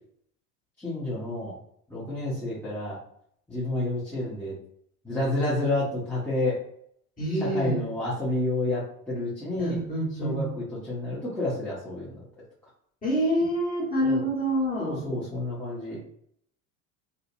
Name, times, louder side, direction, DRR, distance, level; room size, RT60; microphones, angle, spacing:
voice 1, 0.8-1.5 1.9-3.0 3.5-4.5 5.0-6.6 7.4-9.8 10.2-12.2 14.0-14.2 14.8-16.0, left 2 dB, 5° left, -10 dB, 0.8 m, -29 dB
voice 2, 7.2-7.8 9.6-10.4 13.0-15.1, equal, 20° left, -6 dB, 1.5 m, -27 dB
2.6 x 2.1 x 2.5 m, 0.69 s
hypercardioid pair, 80°, 42 cm